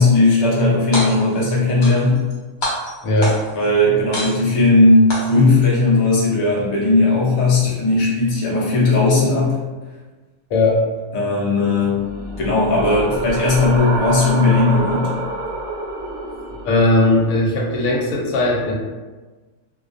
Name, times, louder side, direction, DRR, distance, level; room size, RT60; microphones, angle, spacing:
voice 1, 0.0-2.2 3.5-9.6 11.1-12.0 12.4-15.1, left 2 dB, 40° left, -6 dB, 0.4 m, -16 dB
sound 1, 0.8-1.4 1.8-2.3 2.6-3.6 4.1-4.7 5.1-5.7, equal, 60° left, 0.8 m, -26 dB
voice 2, 3.0-3.4 7.6-7.8 10.5-10.8 13.0-13.1 16.6-18.7, left 2 dB, 90° left, -2 dB, 1.0 m, -18 dB
sound 2, 11.9-17.1, right 2 dB, 65° right, 0.8 m, -28 dB
2.3 x 2.2 x 2.5 m, 1.3 s
omnidirectional pair, 1.4 m